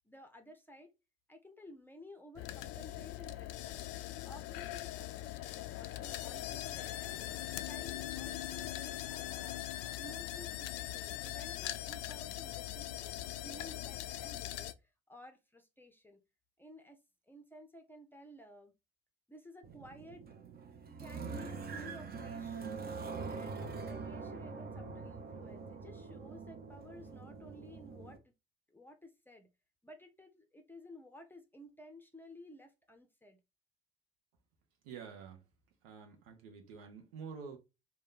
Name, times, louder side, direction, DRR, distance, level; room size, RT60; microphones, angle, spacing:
voice 1, 0.0-0.9 1.3-3.9 4.2-7.3 7.7-9.7 10.0-16.2 16.6-17.0 17.2-18.7 19.3-20.3 21.0-22.7 23.3-28.3 28.7-29.5 29.8-33.4, left 1 dB, 5° left, 0.6 m, -55 dB
sound 1, 2.4-14.7, left 14 dB, 50° left, 0.4 m, -41 dB
sound 2, 19.6-28.2, right 4 dB, 30° right, 0.7 m, -44 dB
voice 2, 34.8-35.4 35.8-37.6, right 6 dB, 65° right, 0.9 m, -48 dB
3.1 x 2.2 x 3.7 m
figure-of-eight pair, 55°, 31 cm